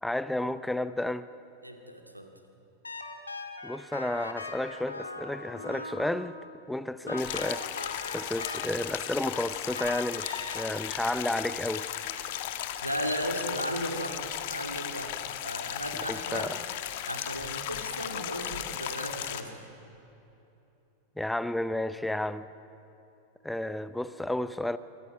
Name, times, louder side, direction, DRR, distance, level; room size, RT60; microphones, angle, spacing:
voice 1, 0.0-1.3 3.6-6.4 6.7-11.9 15.9-16.6 21.2-22.5 23.4-24.8, left 1 dB, 5° left, 0.6 m, -32 dB
voice 2, 1.6-2.3 12.8-15.1 15.4-16.5 17.1-19.6, equal, 90° right, 2.1 m, -35 dB
sound 1, 2.8-6.5 7.1-9.0 9.7-10.6, left 3 dB, 80° left, 1.8 m, -40 dB
sound 2, 7.2-19.4, left 11 dB, 50° left, 1.3 m, -36 dB
26.0 x 24.5 x 5.4 m
figure-of-eight pair, 90°, 0 cm